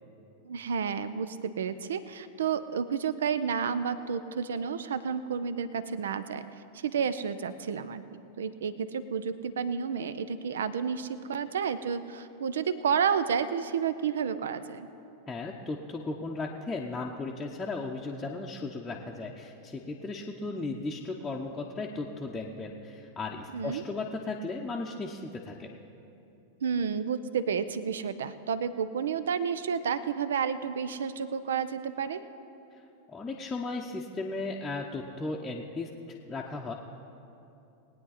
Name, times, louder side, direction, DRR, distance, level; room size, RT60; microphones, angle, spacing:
voice 1, 0.4-6.4 6.7-14.9 23.5-23.8 26.6-32.2, right 7 dB, 65° right, 14 dB, 0.5 m, -31 dB
voice 2, 15.3-25.8 33.1-36.7, left 3 dB, 10° left, -3 dB, 0.8 m, -36 dB
20.5 x 9.3 x 4.2 m, 2.8 s
figure-of-eight pair, 90°, 0 cm